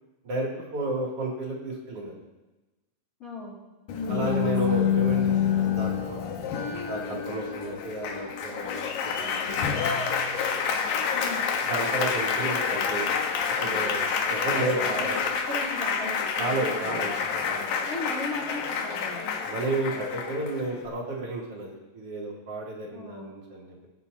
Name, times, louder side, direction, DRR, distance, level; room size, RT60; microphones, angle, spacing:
voice 1, 0.2-2.2 4.1-6.2 6.8-10.1 11.6-13.1 13.5-15.3 16.4-17.7 19.5-23.9, right 2 dB, 35° right, -4 dB, 2.8 m, -32 dB
voice 2, 3.2-3.5 11.1-11.5 15.0-17.0 17.8-19.2 22.9-23.3, left 1 dB, 20° left, -9 dB, 2.6 m, -37 dB
Applause, 3.9-20.9, left 6 dB, 80° left, 2.0 m, -28 dB
25.5 x 8.7 x 2.8 m, 1.1 s
omnidirectional pair, 5.6 m